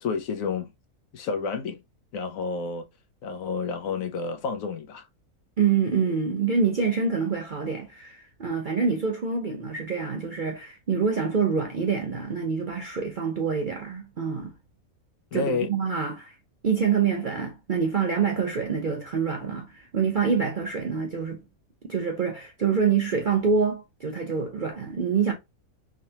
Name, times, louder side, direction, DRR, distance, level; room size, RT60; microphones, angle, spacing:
voice 1, 0.0-0.7 1.1-1.8 2.1-2.9 3.2-5.1 15.3-15.7, left 4 dB, 70° left, 1.0 m, -30 dB
voice 2, 5.6-14.5 15.3-16.3 16.6-21.4 21.9-25.3, right 6 dB, 55° right, 0.5 m, -26 dB
3.7 x 3.3 x 2.7 m
omnidirectional pair, 1.6 m